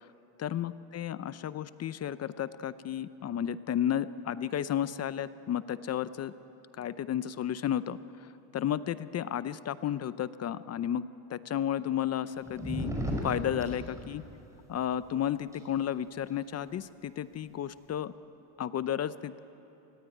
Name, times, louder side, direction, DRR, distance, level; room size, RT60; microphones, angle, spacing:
voice 1, 0.4-6.3 6.8-8.3 8.5-11.0 11.3-12.9 13.2-14.2 14.7-18.1 18.6-19.4, left 10 dB, 35° left, 15 dB, 0.6 m, -32 dB
sound 1, 12.4-14.1 15.5-15.6, equal, 5° right, 5.5 m, -34 dB
26.0 x 19.5 x 9.2 m, 3.0 s
cardioid pair, 115°, 43 cm